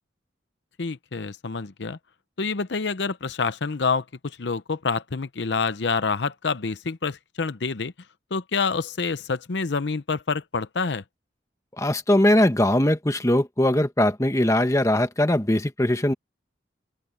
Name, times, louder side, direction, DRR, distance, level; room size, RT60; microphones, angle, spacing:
voice 1, 0.8-2.0 2.4-7.9 8.3-11.0, left 4 dB, 65° left, 0.7 m, -27 dB
voice 2, 11.8-16.1, left 1 dB, 15° left, 1.2 m, -21 dB
open air
head